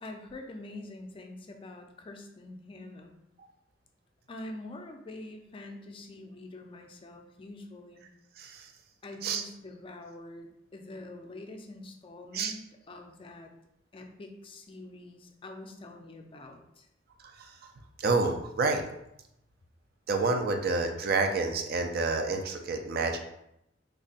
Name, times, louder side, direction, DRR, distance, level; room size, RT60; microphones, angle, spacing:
voice 1, 0.0-3.1 4.3-8.0 9.0-13.5 13.9-16.9, left 2 dB, 30° left, 4 dB, 0.4 m, -45 dB
voice 2, 8.4-8.7 9.2-9.4 12.3-12.5 17.2-17.5 18.0-18.8 20.1-23.2, right 3 dB, 55° right, 5 dB, 0.4 m, -28 dB
3.4 x 2.1 x 4.0 m, 0.80 s
head